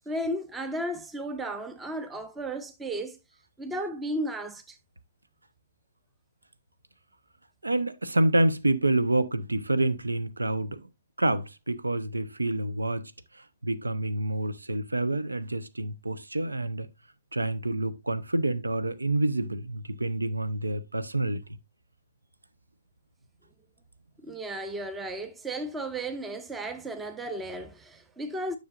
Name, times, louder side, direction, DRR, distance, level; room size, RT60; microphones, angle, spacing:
voice 1, 0.1-3.2 3.6-4.8 24.2-28.6, right 1 dB, 10° right, 0.7 m, -34 dB
voice 2, 7.6-10.9 11.2-16.9 17.3-21.6, right 2 dB, 80° right, 0.8 m, -28 dB
9.6 x 6.4 x 2.5 m
figure-of-eight pair, 125°, 0 cm